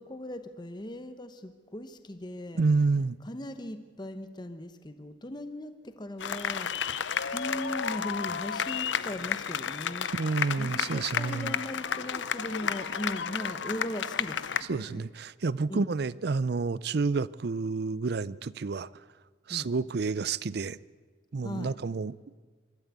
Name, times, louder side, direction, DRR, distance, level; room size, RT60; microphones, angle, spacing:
voice 1, 0.0-2.6 3.2-7.0 7.3-10.1 10.6-15.0 15.7-15.9 19.5-19.7 21.4-21.8, left 1 dB, 25° left, 1.0 m, -39 dB
voice 2, 2.6-3.2 10.1-11.6 14.7-18.9 19.5-20.8 21.3-22.2, right 4 dB, 60° right, 0.5 m, -29 dB
sound 1, 6.2-14.6, left 7 dB, 80° left, 0.7 m, -32 dB
24.5 x 13.0 x 8.2 m
head